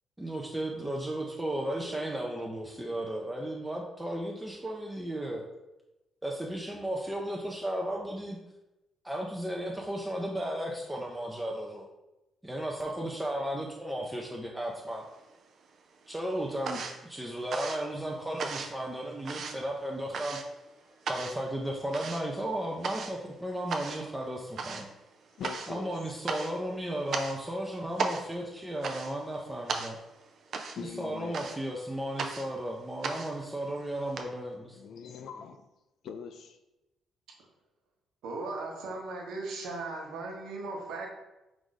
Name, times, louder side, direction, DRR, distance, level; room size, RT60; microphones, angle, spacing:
voice 1, 0.2-5.4 6.2-8.4 9.0-11.9 12.4-15.0 16.1-20.4 21.1-24.9 25.7-30.0 30.8-34.8, right 1 dB, 10° right, 0.6 m, -35 dB
sound 1, 14.9-15.7 15.9-34.2, right 4 dB, 60° right, 0.5 m, -38 dB
voice 2, 25.4-26.0 27.4-27.5 30.7-31.6 34.8-35.7 36.0-36.6, left 6 dB, 70° left, 0.3 m, -43 dB
voice 3, 38.2-41.1, right 3 dB, 85° right, 1.0 m, -37 dB
4.7 x 2.6 x 3.9 m
cardioid pair, 90°, 0 cm